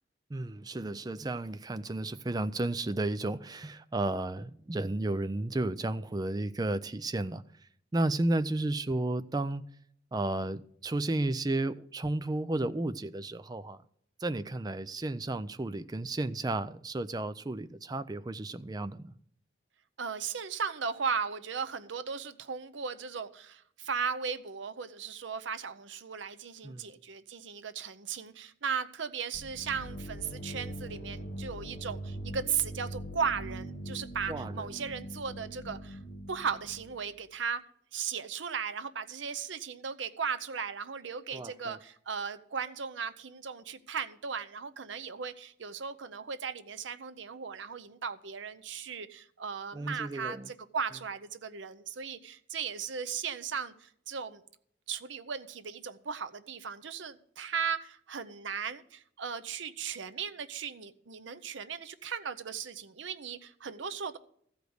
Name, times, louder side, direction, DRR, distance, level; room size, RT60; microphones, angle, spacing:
voice 1, 0.3-7.4 7.9-9.6 10.1-13.8 14.2-19.1 26.6-26.9 34.3-34.7 41.3-41.8 49.7-50.5, right 2 dB, 20° right, 0.4 m, -33 dB
voice 2, 20.0-36.0 36.3-37.6 37.9-54.4 54.9-64.2, right 6 dB, 75° right, 0.7 m, -37 dB
sound 1, 29.3-37.1, right 1 dB, 50° left, 1.0 m, -42 dB
14.5 x 5.1 x 7.9 m
head